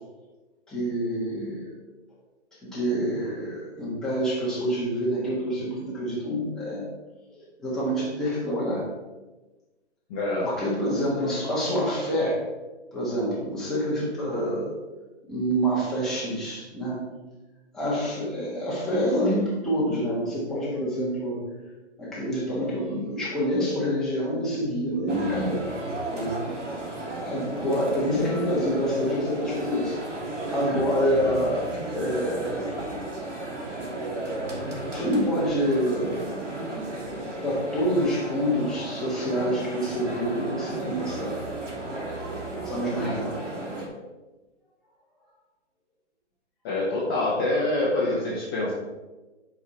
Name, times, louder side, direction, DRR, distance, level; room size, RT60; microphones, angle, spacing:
voice 1, 0.7-1.6 2.6-6.8 7.6-8.8 10.4-12.4 12.9-14.7 15.3-17.0 17.7-21.4 22.0-25.6 26.1-26.3 27.2-30.0 30.3-31.7 31.9-32.7 34.9-36.6 37.4-41.4 42.6-43.6 47.5-47.6, equal, ahead, -8 dB, 1.4 m, -27 dB
voice 2, 10.1-10.5 46.6-48.7, left 2 dB, 20° left, -5 dB, 1.1 m, -25 dB
sound 1, 25.1-43.9, right 2 dB, 90° right, 2.8 m, -34 dB
9.3 x 4.8 x 4.5 m, 1.2 s
hypercardioid pair, 160°, 36 cm